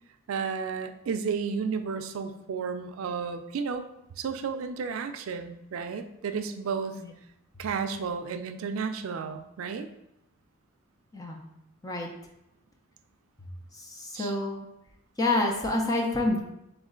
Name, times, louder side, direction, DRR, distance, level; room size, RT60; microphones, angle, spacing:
voice 1, 0.3-3.8 4.2-7.0 7.6-9.9 14.1-14.3, right 5 dB, 85° right, 8 dB, 0.4 m, -32 dB
voice 2, 11.1-11.4 11.8-12.1 13.7-14.7 15.2-16.4, left 2 dB, 20° left, 1 dB, 0.6 m, -28 dB
3.6 x 3.1 x 3.7 m, 0.85 s
head